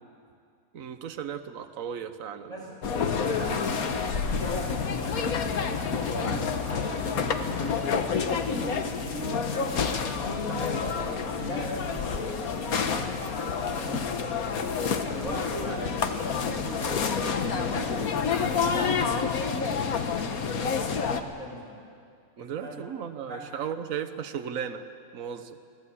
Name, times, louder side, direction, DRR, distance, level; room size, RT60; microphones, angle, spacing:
voice 1, 0.7-2.6 22.4-24.9 25.1-25.6, right 8 dB, 65° right, 9 dB, 1.4 m, -35 dB
sound 1, 2.8-21.2, left 6 dB, 70° left, 1.6 m, -28 dB
voice 2, 3.0-4.0 4.4-9.8 10.0-14.4 15.0-16.0 16.3-21.8 22.4-22.7 23.2-23.4, right 1 dB, 25° left, -4 dB, 7.6 m, -40 dB
sound 2, 4.1-18.8, equal, 45° left, 8.2 m, -48 dB
24.0 x 18.5 x 8.5 m, 2.3 s
omnidirectional pair, 1.6 m